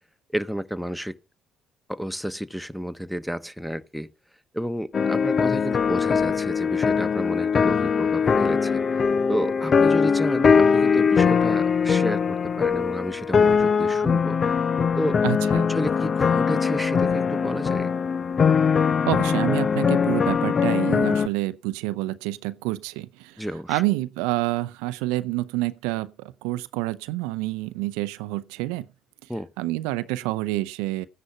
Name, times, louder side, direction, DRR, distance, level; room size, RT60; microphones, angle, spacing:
voice 1, 0.3-1.1 1.9-4.1 4.5-8.8 9.3-14.4 15.0-15.2 15.7-17.9 23.4-23.8 29.3-29.5, equal, ahead, 1.1 m, -31 dB
sound 1, 4.9-21.3, left 6 dB, 40° left, 0.6 m, -21 dB
voice 2, 15.2-15.7 19.1-28.9 29.6-31.1, right 18 dB, 70° right, 0.6 m, -28 dB
14.5 x 10.0 x 5.6 m
hypercardioid pair, 50°, 0 cm